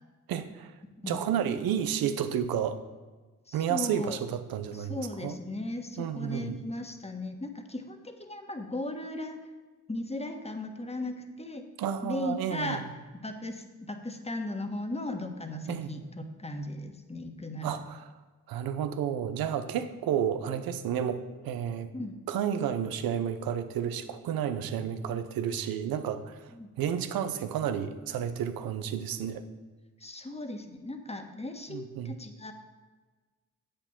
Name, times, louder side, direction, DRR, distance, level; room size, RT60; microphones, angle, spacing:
voice 1, 0.3-0.7 1.1-2.8 3.5-5.4 6.0-6.6 11.8-12.8 15.7-15.9 17.6-18.1 18.5-21.9 22.3-26.4 26.8-29.4 31.7-32.1, right 9 dB, 85° right, 10 dB, 0.8 m, -31 dB
voice 2, 3.5-4.2 4.7-9.4 9.9-11.7 12.0-12.8 13.1-17.7 21.9-22.2 24.6-24.7 25.5-25.6 26.5-26.7 30.0-32.5, left 1 dB, 20° left, 5 dB, 1.6 m, -37 dB
8.1 x 6.8 x 7.3 m, 1.3 s
supercardioid pair, 50°, 34 cm